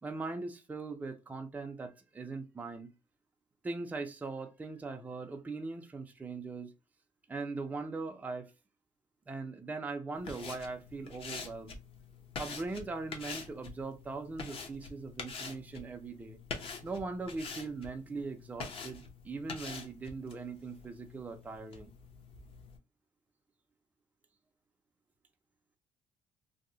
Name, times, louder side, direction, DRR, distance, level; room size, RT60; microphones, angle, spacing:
voice 1, 0.0-2.9 3.6-6.7 7.3-8.5 9.3-11.8 12.4-16.4 16.8-21.9, right 3 dB, 10° right, 0.4 m, -40 dB
sound 1, 10.1-22.8, left 4 dB, 45° left, 0.6 m, -46 dB
2.7 x 2.0 x 3.7 m
cardioid pair, 170°, 13 cm